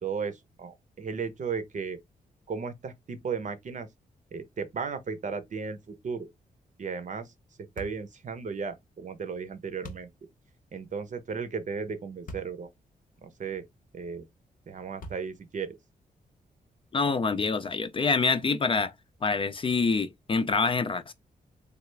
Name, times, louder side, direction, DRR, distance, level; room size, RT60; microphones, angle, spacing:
voice 1, 0.0-2.0 2.5-3.9 4.3-6.3 6.8-7.3 7.8-10.1 10.7-12.7 13.2-13.6 13.9-14.2 14.7-15.7, right 5 dB, 50° right, 0.6 m, -35 dB
sound 1, 7.8-8.1 9.8-10.1 12.3-12.6 13.2-13.3 15.0-15.5, equal, 60° left, 0.7 m, -42 dB
voice 2, 16.9-18.9 19.2-21.1, left 4 dB, 35° left, 0.4 m, -26 dB
3.3 x 2.3 x 3.2 m
cardioid pair, 85°, 16 cm